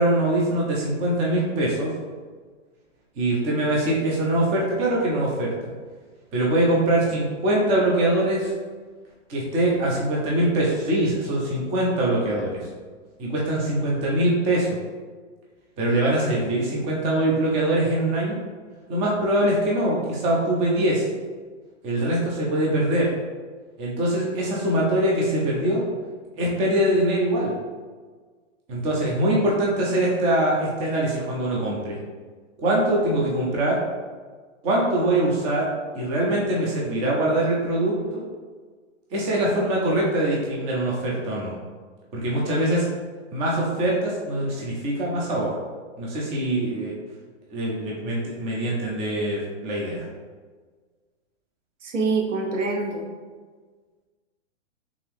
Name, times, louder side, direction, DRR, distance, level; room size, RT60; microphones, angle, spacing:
voice 1, 0.0-1.9 3.2-5.5 6.3-8.5 9.3-12.7 13.2-14.8 15.8-18.4 18.9-21.1 21.8-23.1 23.8-25.9 26.4-27.5 28.7-32.0 32.6-33.8 34.6-35.7 35.9-38.2 39.1-41.5 42.1-42.9 43.3-45.6 46.0-46.9 47.5-50.1, right 1 dB, 15° right, -4 dB, 0.5 m, -23 dB
voice 2, 51.8-53.0, right 3 dB, 75° right, 1 dB, 0.9 m, -25 dB
3.6 x 2.8 x 3.4 m, 1.5 s
hypercardioid pair, 140°, 37 cm